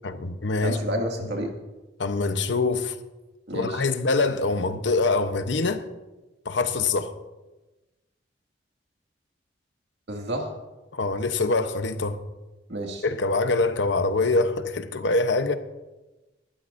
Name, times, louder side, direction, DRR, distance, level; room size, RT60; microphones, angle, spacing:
voice 1, 0.0-0.8 1.2-1.3 2.0-2.9 3.5-5.8 6.4-7.2 10.9-12.2 13.0-15.6, left 3 dB, 85° left, 0.9 m, -24 dB
voice 2, 0.6-1.5 3.5-3.8 10.1-10.5 12.7-13.0, right 1 dB, 70° right, 2.1 m, -30 dB
19.0 x 12.5 x 2.6 m
head